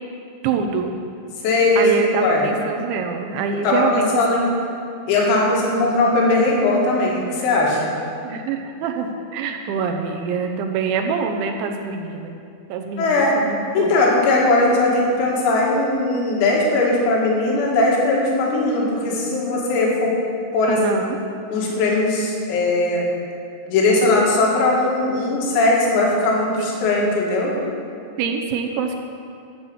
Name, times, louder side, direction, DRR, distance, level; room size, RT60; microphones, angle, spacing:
voice 1, 0.4-0.9 1.8-4.1 8.2-12.3 12.7-13.9 20.7-21.2 28.2-29.0, right 5 dB, 80° right, 4 dB, 2.9 m, -25 dB
voice 2, 1.4-2.5 3.6-4.5 5.1-7.9 13.0-13.3 13.7-20.1 20.5-21.0 21.5-23.1 23.7-27.5, left 2 dB, 90° left, -3 dB, 4.9 m, -19 dB
13.0 x 7.4 x 8.0 m, 2.4 s
omnidirectional pair, 5.9 m